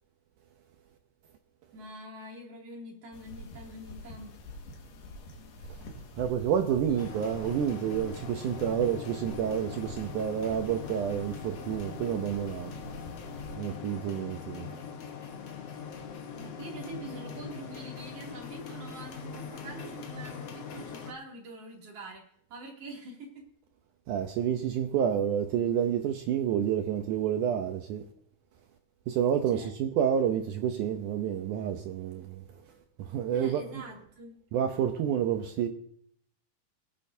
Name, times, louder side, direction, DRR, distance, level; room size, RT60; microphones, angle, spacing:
voice 1, 1.7-4.3 6.9-7.3 16.4-22.2 22.5-23.5 29.5-29.7 33.3-34.4, right 1 dB, 40° right, 3.3 m, -45 dB
sound 1, 3.1-13.6, equal, 90° left, 3.7 m, -46 dB
voice 2, 6.2-12.7 13.6-14.7 24.1-28.0 29.1-32.4 33.0-33.8 34.5-35.7, right 9 dB, 85° right, 1.8 m, -29 dB
sound 2, 7.0-21.1, left 6 dB, 65° left, 1.5 m, -42 dB
22.5 x 8.9 x 2.7 m
omnidirectional pair, 4.5 m